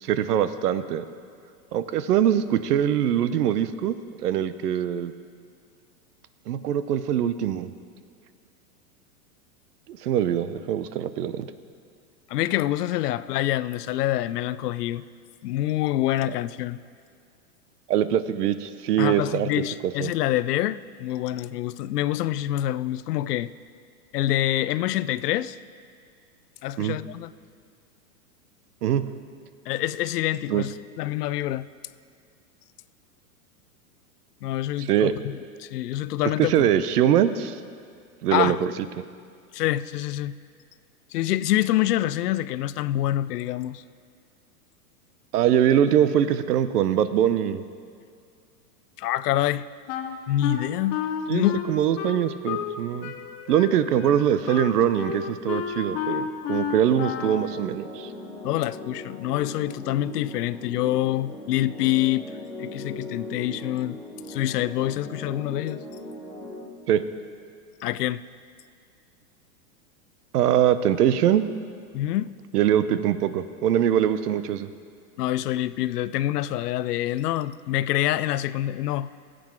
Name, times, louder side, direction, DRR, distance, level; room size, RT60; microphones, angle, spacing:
voice 1, 0.0-1.0 1.7-4.0 4.2-5.1 6.5-7.7 9.9-11.5 17.9-19.5 20.0-20.1 26.8-27.0 28.8-29.0 30.5-30.6 34.8-35.1 36.4-37.6 38.2-38.7 39.0-39.1 45.3-47.6 51.3-53.1 53.5-58.1 66.9-67.0 70.3-71.5 72.5-74.7, right 10 dB, 85° right, 13 dB, 0.8 m, -23 dB
voice 2, 12.3-15.0 15.4-16.8 19.0-23.5 24.1-25.6 26.6-27.3 29.7-31.7 34.4-36.5 38.3-38.6 39.5-40.4 41.1-43.8 49.0-49.7 50.3-51.0 51.3-51.6 58.4-62.3 62.6-64.0 64.3-65.8 67.8-68.2 71.9-72.3 75.2-79.1, left 14 dB, 85° left, 17 dB, 0.6 m, -26 dB
Wind instrument woodwind instrument, 49.9-52.8 53.0-57.5, left 7 dB, 35° left, 0.9 m, -31 dB
sound 1, 56.8-66.7, left 1 dB, ahead, 0.9 m, -39 dB
16.0 x 7.9 x 4.5 m, 2.3 s
hypercardioid pair, 135°, 46 cm